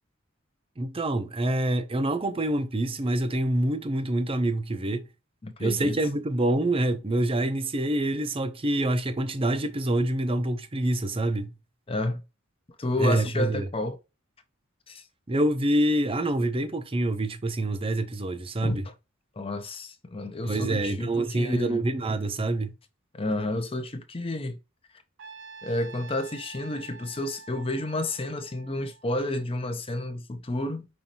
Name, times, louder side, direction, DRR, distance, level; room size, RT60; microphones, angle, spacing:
voice 1, 0.8-5.1 5.6-11.5 13.0-13.7 15.3-18.9 20.5-22.7, right 1 dB, 25° right, 0.6 m, -26 dB
voice 2, 5.4-6.0 11.9-12.2 12.8-14.0 14.9-15.0 18.6-18.9 19.4-21.8 23.1-24.6 25.6-30.9, left 1 dB, 25° left, 0.6 m, -31 dB
Trumpet, 25.2-29.4, right 5 dB, 60° right, 0.8 m, -47 dB
5.4 x 3.2 x 2.8 m
head